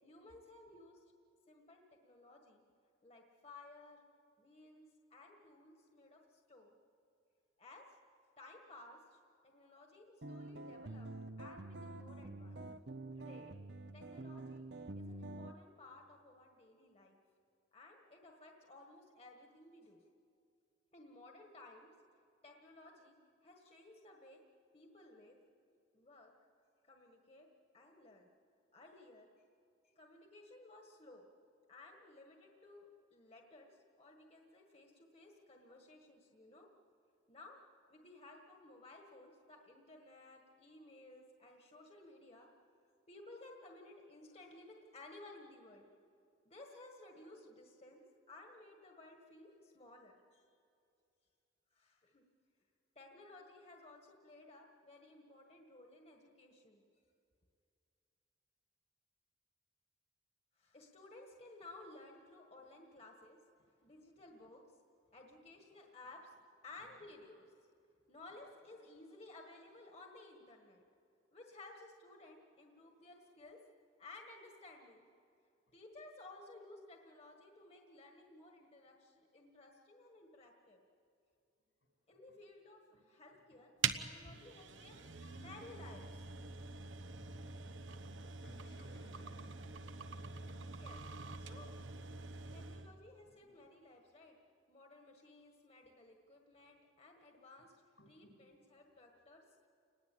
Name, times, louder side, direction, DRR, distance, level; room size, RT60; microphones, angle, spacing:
voice 1, 0.0-1.0 1.5-2.6 3.0-4.1 4.4-6.8 7.6-8.0 8.4-12.6 13.1-13.6 13.9-14.7 14.9-17.2 17.7-20.0 20.9-21.9 22.4-23.2 23.4-24.4 24.7-25.4 25.9-26.3 26.9-27.5 27.7-28.3 28.7-29.3 29.8-31.3 31.7-36.7 37.3-37.6 37.9-42.5 43.1-45.9 46.4-50.6 51.7-52.2 52.9-56.8 60.5-63.4 63.8-64.8 65.1-66.3 66.6-67.5 68.1-70.8 71.3-73.6 74.0-75.1 75.7-80.8 82.1-86.3 90.7-91.0 91.4-91.7 92.5-94.4 94.7-99.7, left 2 dB, 35° left, 1 dB, 1.7 m, -57 dB
sound 1, 10.2-15.5, right 2 dB, 60° right, 0.8 m, -47 dB
sound 2, 83.8-92.9, right 6 dB, 85° right, 1.1 m, -44 dB
voice 2, 84.8-85.1 88.4-90.5 92.4-92.9 93.2-93.5 98.0-98.4, equal, 80° left, 1 dB, 7.1 m, -63 dB
29.5 x 20.0 x 8.6 m, 2.5 s
head